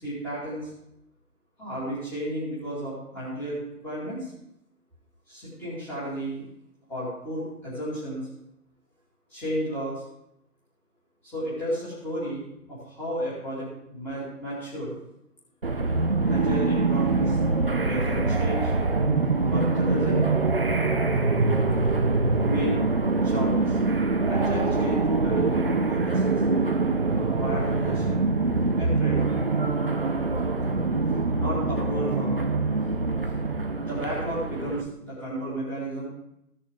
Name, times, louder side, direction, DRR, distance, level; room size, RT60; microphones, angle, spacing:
voice 1, 0.0-0.7 1.6-4.3 5.3-6.5 6.9-8.3 9.3-10.0 11.3-15.0 16.3-17.4 17.8-18.7 19.4-20.3 22.4-22.8 23.2-23.8 24.3-26.4 27.1-28.2 28.8-29.3 31.3-32.4 33.9-36.1, equal, 5° left, -11 dB, 2.4 m, -33 dB
sound 1, 15.6-34.8, right 3 dB, 35° right, 0.7 m, -24 dB
15.5 x 6.5 x 3.7 m, 0.80 s
figure-of-eight pair, 165°, 47 cm